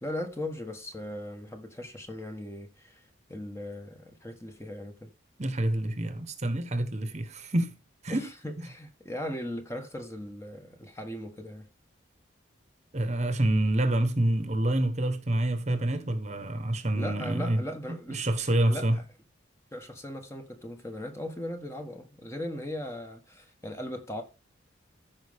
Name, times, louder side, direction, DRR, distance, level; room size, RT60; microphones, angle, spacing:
voice 1, 0.0-5.1 8.1-11.7 16.9-19.0 19.7-24.2, left 1 dB, 15° left, 1.2 m, -38 dB
voice 2, 5.4-7.7 8.0-8.2 8.6-8.7 12.9-17.6 18.1-19.0, right 1 dB, 35° right, 1.1 m, -27 dB
14.5 x 5.3 x 3.5 m
head